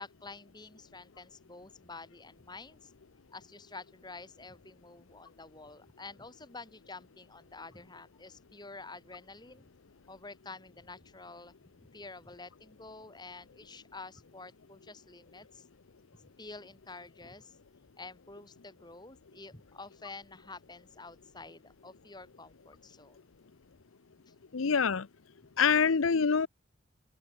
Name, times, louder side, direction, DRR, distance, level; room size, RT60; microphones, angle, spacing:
voice 1, 0.0-2.9 3.3-9.7 10.1-15.7 16.1-17.6 18.0-23.2 24.3-24.4, left 3 dB, 20° left, 2.2 m, -49 dB
voice 2, 24.5-25.1 25.6-26.5, left 6 dB, 85° left, 0.7 m, -25 dB
head